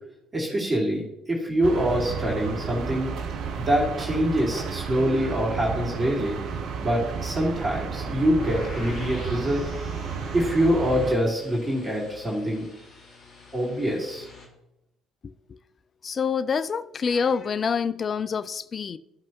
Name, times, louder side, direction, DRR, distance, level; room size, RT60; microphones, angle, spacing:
voice 1, 0.3-3.1 3.6-6.4 6.8-9.7 10.3-12.6 13.5-14.3, equal, 25° right, 2.6 m, -25 dB
sound 1, 1.6-11.2, right 6 dB, 55° right, 0.7 m, -32 dB
sound 2, 8.4-14.5, left 3 dB, 55° left, 2.2 m, -46 dB
voice 2, 16.0-19.0, left 6 dB, 40° left, 0.4 m, -26 dB
14.0 x 6.1 x 2.9 m
figure-of-eight pair, 50°, 0 cm